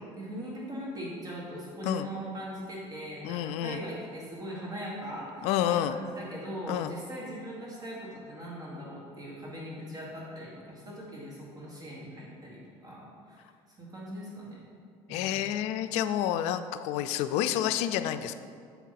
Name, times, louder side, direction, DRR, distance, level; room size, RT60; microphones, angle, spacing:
voice 1, 0.2-13.4 13.8-14.6 15.1-15.4, equal, 35° right, -4 dB, 1.7 m, -40 dB
voice 2, 3.2-3.8 5.4-6.0 6.7-6.9 15.1-18.3, left 11 dB, 80° left, 11 dB, 0.4 m, -29 dB
7.0 x 4.6 x 5.8 m, 2.2 s
cardioid pair, 125°, 11 cm